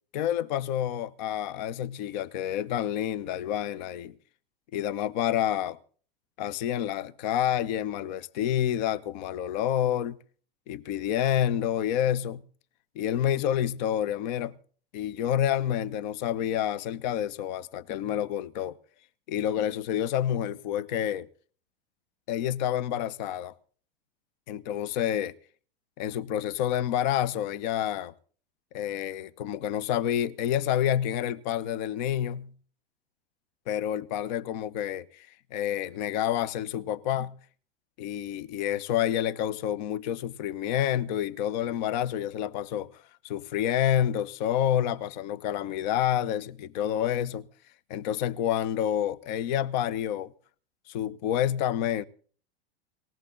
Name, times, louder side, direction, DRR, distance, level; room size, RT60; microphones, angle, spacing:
voice 1, 0.1-4.1 4.7-5.8 6.4-10.2 10.7-12.4 13.0-14.5 14.9-18.8 19.3-21.3 22.3-23.5 24.5-25.4 26.0-28.1 28.7-32.5 33.7-37.3 38.0-42.9 43.2-47.5 47.9-50.3 50.9-52.0, left 10 dB, 45° left, 0.8 m, -28 dB
19.5 x 16.5 x 3.7 m
figure-of-eight pair, 90°, 31 cm